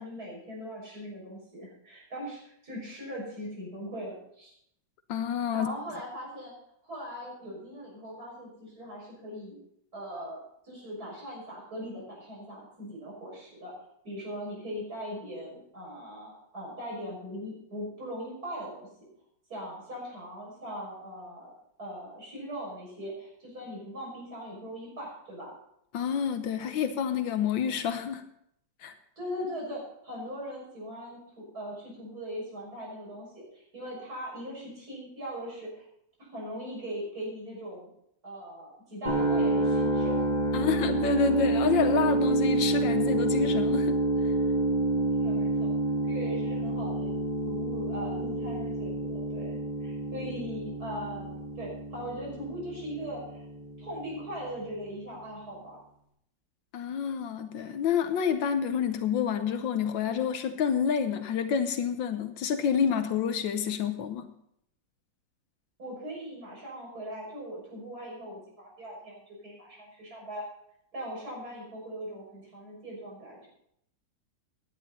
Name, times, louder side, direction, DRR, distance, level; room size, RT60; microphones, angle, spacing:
voice 1, 0.0-4.5 5.5-6.5 6.8-9.6 9.9-13.7 14.0-19.1 19.5-25.5 29.2-35.9 36.2-37.9 38.2-40.2 44.9-45.7 46.0-47.1 47.4-53.4 53.8-55.8 65.8-70.4 70.9-73.5, equal, 55° right, -4 dB, 6.9 m, -40 dB
voice 2, 5.1-5.7 25.9-28.2 28.8-28.9 40.5-44.0 56.7-64.3, left 7 dB, 85° left, 8 dB, 1.6 m, -28 dB
sound 1, 39.1-55.0, right 2 dB, 25° left, 2.5 m, -28 dB
17.0 x 10.5 x 4.2 m, 0.72 s
omnidirectional pair, 2.0 m